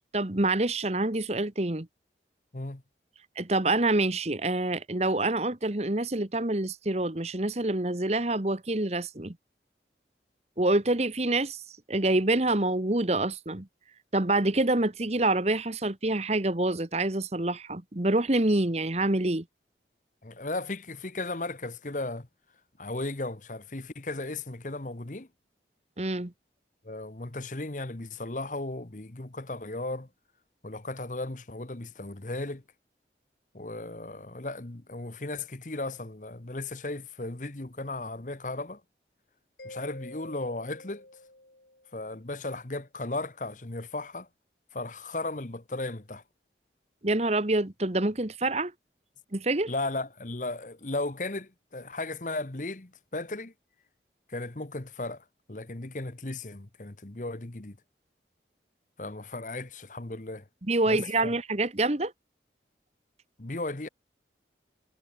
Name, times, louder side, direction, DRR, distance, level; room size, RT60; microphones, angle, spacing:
voice 1, 0.1-1.9 3.4-9.4 10.6-11.6 11.9-13.7 14.1-19.4 26.0-26.3 47.0-48.7 49.3-49.7 60.6-62.1, right 2 dB, 35° right, 1.3 m, -26 dB
voice 2, 20.2-22.3 22.8-25.3 26.8-30.1 30.6-32.6 33.5-38.8 39.6-41.1 41.9-44.3 44.7-46.2 49.7-53.5 54.3-57.8 59.0-60.4 60.9-61.3 63.4-63.9, left 2 dB, 45° left, 1.2 m, -36 dB
Mallet percussion, 39.6-42.1, left 1 dB, 65° left, 6.3 m, -48 dB
head